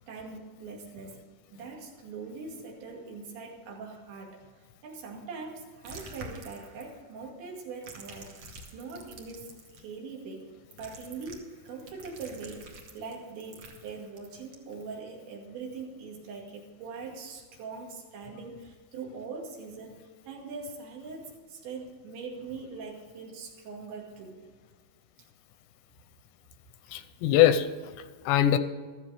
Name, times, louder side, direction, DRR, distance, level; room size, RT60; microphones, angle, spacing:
voice 1, 0.1-1.2 1.5-8.4 8.7-10.5 10.8-24.4, right 4 dB, 75° right, -1 dB, 4.6 m, -42 dB
sound 1, 5.8-7.1 7.6-9.8 10.7-14.8, right 2 dB, 60° right, 1.6 m, -48 dB
voice 2, 26.9-28.6, left 11 dB, 85° left, 11 dB, 2.8 m, -23 dB
15.0 x 13.5 x 3.5 m, 1.5 s
omnidirectional pair, 5.2 m